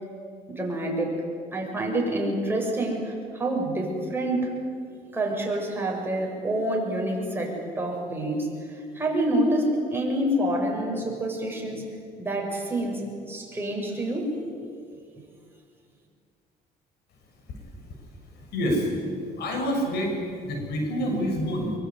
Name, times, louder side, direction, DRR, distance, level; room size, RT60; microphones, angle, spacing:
voice 1, 0.5-1.2 1.5-4.6 5.1-8.5 8.9-11.8 12.2-14.4, right 1 dB, 15° right, -1 dB, 7.6 m, -27 dB
voice 2, 18.4-18.9 19.4-20.2 20.4-21.7, equal, 75° left, 2 dB, 7.0 m, -27 dB
24.0 x 23.0 x 9.6 m, 2.3 s
cardioid pair, 110°, 17 cm